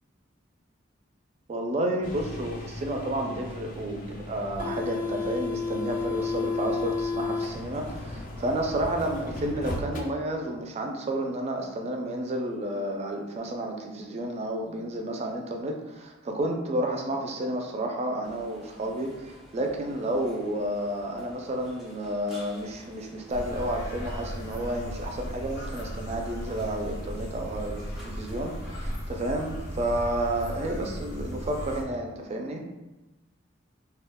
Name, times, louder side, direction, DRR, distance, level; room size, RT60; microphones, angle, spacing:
voice 1, 1.5-32.6, right 1 dB, 35° right, 2 dB, 0.3 m, -31 dB
sound 1, 2.0-10.0, left 4 dB, 45° left, 0.3 m, -33 dB
sound 2, 18.2-28.9, equal, ahead, 0.6 m, -51 dB
sound 3, 23.3-31.8, equal, 85° left, 0.7 m, -36 dB
2.3 x 2.2 x 3.4 m, 1.1 s
head